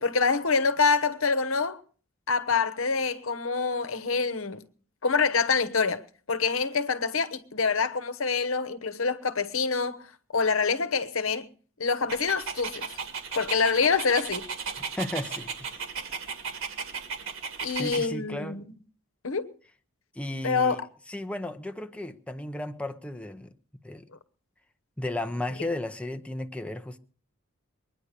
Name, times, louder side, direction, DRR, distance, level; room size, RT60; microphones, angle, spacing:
voice 1, 0.0-1.8 2.3-4.6 5.0-10.0 10.3-11.5 11.8-12.9 13.3-14.5 17.6-18.7 19.2-19.5 20.4-20.8, left 5 dB, 75° left, 1.1 m, -26 dB
Dog, 12.1-18.1, right 5 dB, 65° right, 2.1 m, -36 dB
voice 2, 14.8-15.5 17.7-18.6 20.1-20.8 21.1-23.5 23.8-24.0 25.0-27.0, left 1 dB, 5° left, 0.7 m, -34 dB
21.5 x 10.0 x 6.7 m
head